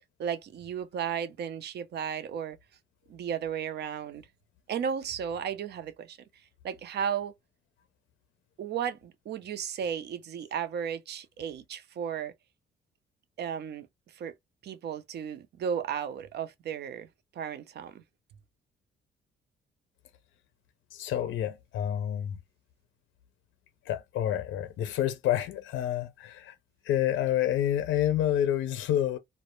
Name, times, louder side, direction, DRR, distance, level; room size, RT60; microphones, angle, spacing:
voice 1, 0.2-2.6 3.1-4.2 4.7-6.2 6.6-7.3 8.6-12.3 13.4-13.9 14.1-14.3 14.6-17.1 17.3-18.0, right 8 dB, 55° right, 0.5 m, -34 dB
voice 2, 20.9-22.4 23.9-26.5 26.8-29.2, left 11 dB, 70° left, 0.5 m, -28 dB
2.1 x 2.1 x 2.9 m
cardioid pair, 90°, 20 cm